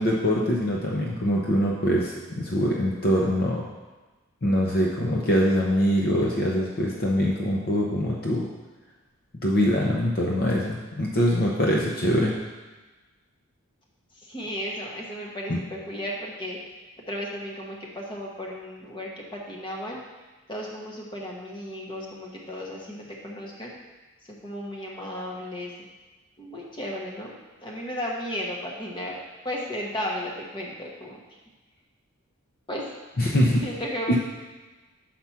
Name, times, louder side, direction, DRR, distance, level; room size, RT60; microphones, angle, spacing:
voice 1, 0.0-3.6 4.4-8.5 9.4-12.3 15.5-15.6 33.2-33.6 34.1-34.2, equal, 50° left, -2 dB, 0.8 m, -23 dB
voice 2, 14.1-16.6 17.1-20.0 20.5-23.7 24.2-25.7 26.4-31.2 32.7-32.9 33.6-34.2, equal, 25° left, -2 dB, 1.2 m, -34 dB
5.9 x 4.8 x 5.7 m, 1.2 s
head